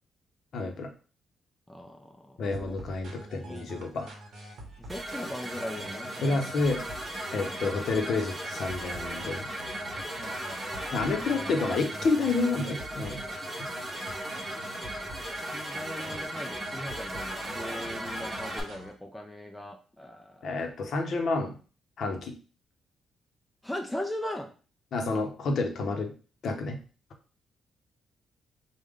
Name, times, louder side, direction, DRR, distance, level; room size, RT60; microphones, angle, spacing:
voice 1, 0.5-0.9 2.4-4.1 6.2-6.8 7.3-9.5 10.9-13.2 13.6-13.7 20.4-21.6 22.0-22.3 24.9-26.1 26.4-26.8, left 3 dB, 50° left, 5 dB, 0.7 m, -29 dB
voice 2, 1.7-2.7 3.3-3.7 4.8-6.7 10.2-11.1 15.5-20.5 23.6-24.5, left 1 dB, 5° left, 3 dB, 0.3 m, -39 dB
sound 1, 2.5-18.9, right 1 dB, 55° right, 1.0 m, -47 dB
sound 2, 4.9-18.6, right 1 dB, 10° right, 0.7 m, -37 dB
4.8 x 2.1 x 3.5 m, 0.37 s
cardioid pair, 175°, 0 cm